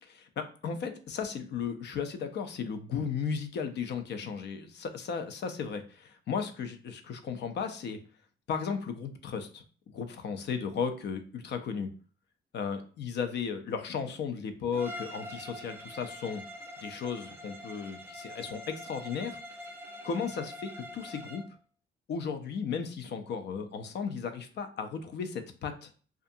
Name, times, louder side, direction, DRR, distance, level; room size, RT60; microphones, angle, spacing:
voice 1, 0.0-8.0 8.5-9.6 9.9-11.9 12.5-16.4 16.8-19.4 20.0-21.4 22.1-25.9, left 6 dB, 60° left, 8 dB, 0.5 m, -35 dB
Bowed string instrument, 14.7-21.5, equal, 10° right, 0.5 m, -44 dB
2.6 x 2.4 x 2.6 m, 0.40 s
cardioid pair, 90°, 20 cm